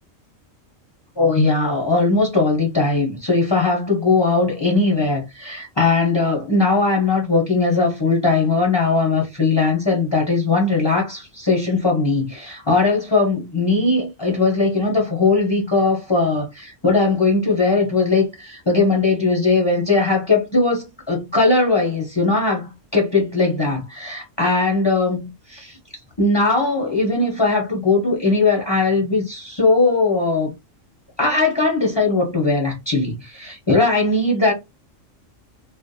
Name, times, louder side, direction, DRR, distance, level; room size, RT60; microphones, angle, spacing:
voice 1, 1.2-25.7 26.2-30.5 31.2-34.5, left 3 dB, 35° left, 0.4 m, -19 dB
2.4 x 2.1 x 2.5 m
omnidirectional pair, 1.4 m